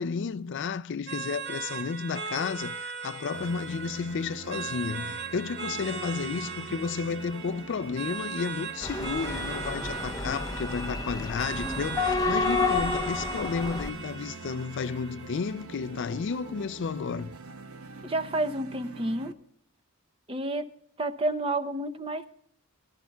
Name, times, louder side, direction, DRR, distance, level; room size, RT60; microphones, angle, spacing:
voice 1, 0.0-17.3, left 5 dB, 55° left, 0.4 m, -32 dB
sound 1, 1.1-16.0, right 5 dB, 50° right, 2.2 m, -38 dB
sound 2, 3.3-19.3, right 3 dB, 70° right, 0.8 m, -45 dB
sound 3, 8.8-13.9, left 3 dB, 15° left, 0.7 m, -30 dB
voice 2, 18.0-19.3 20.3-20.7 21.0-22.2, right 1 dB, 25° right, 0.7 m, -30 dB
22.5 x 12.5 x 2.3 m
head